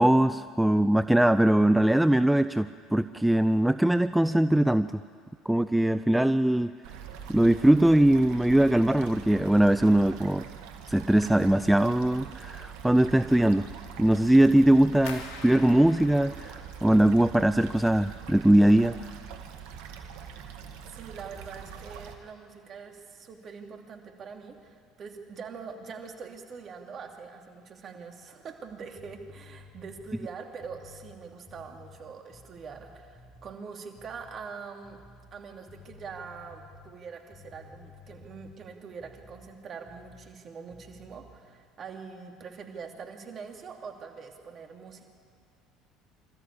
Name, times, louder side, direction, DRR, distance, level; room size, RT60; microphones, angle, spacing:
voice 1, 0.0-4.9 5.5-6.7 7.3-10.4 10.9-13.7 14.0-18.9, right 1 dB, 5° right, 13 dB, 0.5 m, -21 dB
sound 1, 6.8-22.2, right 7 dB, 70° right, 1.8 m, -43 dB
sound 2, 15.1-17.9 18.2-18.9 19.3-19.7 20.1-20.3, left 5 dB, 70° left, 2.5 m, -46 dB
voice 2, 20.9-35.0 35.3-45.1, right 5 dB, 45° right, 3 dB, 2.8 m, -43 dB
sound 3, 28.6-33.6 33.9-34.5 34.8-39.5 39.9-40.4 40.7-41.4, left 3 dB, 10° left, 7.0 m, -53 dB
26.0 x 14.0 x 8.6 m, 2.1 s
hypercardioid pair, 70°, 0 cm